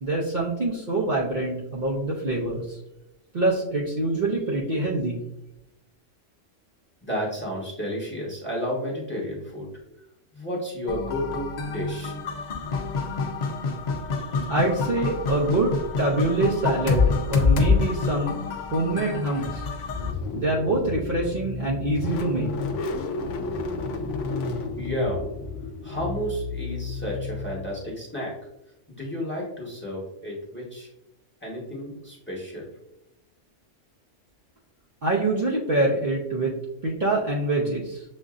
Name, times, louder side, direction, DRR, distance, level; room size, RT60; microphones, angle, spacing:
voice 1, 0.0-2.8 3.3-5.2 14.4-18.4 18.7-19.7 20.3-22.5 35.0-36.5 36.8-38.0, right 2 dB, 45° right, -4 dB, 0.7 m, -25 dB
voice 2, 7.0-9.7 10.3-12.1 24.8-25.3 25.8-28.3 29.0-30.9 31.4-32.7, equal, 10° left, -4 dB, 1.0 m, -31 dB
sound 1, 10.9-20.1, left 4 dB, 55° left, 0.5 m, -26 dB
Car / Engine starting, 19.3-28.0, left 3 dB, 70° left, 0.9 m, -32 dB
7.1 x 2.6 x 2.4 m, 0.88 s
omnidirectional pair, 1.3 m